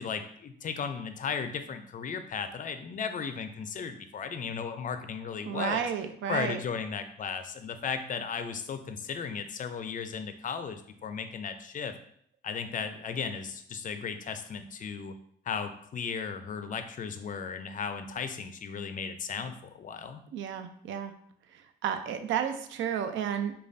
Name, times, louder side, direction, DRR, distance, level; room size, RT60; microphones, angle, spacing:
voice 1, 0.0-5.8 6.3-11.9 12.4-15.1 15.5-20.2, left 6 dB, 40° left, 9 dB, 0.4 m, -35 dB
voice 2, 5.5-6.6 20.3-21.1 21.5-23.5, right 8 dB, 75° right, 8 dB, 0.5 m, -32 dB
5.0 x 2.3 x 2.5 m, 0.66 s
cardioid pair, 90°, 20 cm